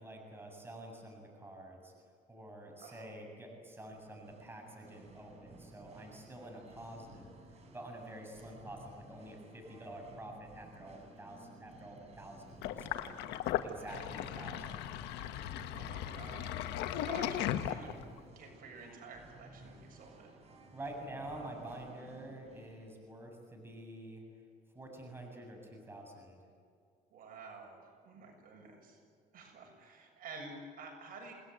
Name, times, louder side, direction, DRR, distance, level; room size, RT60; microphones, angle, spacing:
voice 1, 0.0-1.9 2.3-13.1 13.6-14.9 20.7-24.2 24.7-26.4, right 1 dB, 15° right, 1 dB, 7.4 m, -48 dB
Singing, 3.8-22.9, right 2 dB, 40° right, 7.7 m, -57 dB
Sink (filling or washing), 12.6-18.2, left 11 dB, 85° left, 1.5 m, -37 dB
voice 2, 13.7-14.8 15.7-16.5 17.0-18.0 18.4-20.3 27.1-29.0 29.3-31.3, right 4 dB, 55° right, 2 dB, 7.3 m, -51 dB
28.5 x 19.5 x 9.4 m, 2.2 s
cardioid pair, 110°, 17 cm